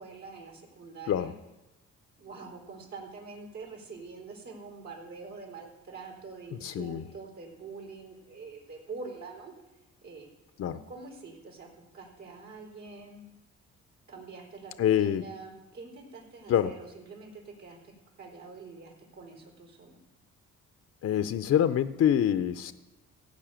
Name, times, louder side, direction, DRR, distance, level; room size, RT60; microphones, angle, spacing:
voice 1, 0.0-1.4 2.2-10.3 10.6-13.2 14.1-20.0, right 4 dB, 65° right, -1 dB, 4.0 m, -45 dB
voice 2, 6.6-7.0 10.6-10.8 14.8-15.2 16.5-16.7 21.0-22.7, left 10 dB, 55° left, 11 dB, 0.6 m, -25 dB
16.0 x 5.4 x 8.9 m, 1.0 s
cardioid pair, 90°, 30 cm